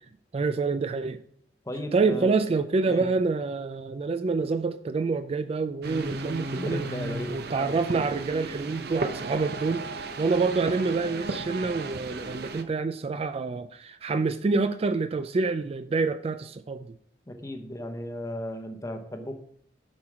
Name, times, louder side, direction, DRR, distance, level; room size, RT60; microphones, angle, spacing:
voice 1, 0.3-1.2 1.9-6.8 7.3-16.9, right 4 dB, 35° right, 10 dB, 0.3 m, -27 dB
voice 2, 1.6-2.4 2.9-3.1 6.6-7.8 17.3-19.3, equal, 20° left, 6 dB, 0.8 m, -35 dB
sound 1, 5.8-12.6, right 3 dB, 65° right, 0.7 m, -35 dB
7.2 x 4.6 x 4.9 m, 0.63 s
head